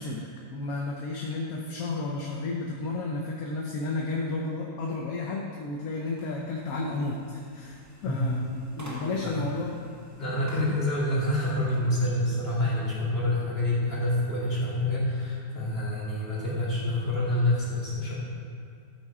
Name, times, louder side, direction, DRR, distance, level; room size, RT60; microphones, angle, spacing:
voice 1, 0.0-9.7 10.5-10.7, left 3 dB, 70° left, -1 dB, 1.2 m, -32 dB
sound 1, 6.1-11.9, equal, 10° right, 1.1 m, -49 dB
voice 2, 9.2-9.6 10.2-18.2, left 1 dB, 40° left, -8 dB, 2.5 m, -27 dB
12.0 x 4.4 x 4.8 m, 2.4 s
omnidirectional pair, 1.6 m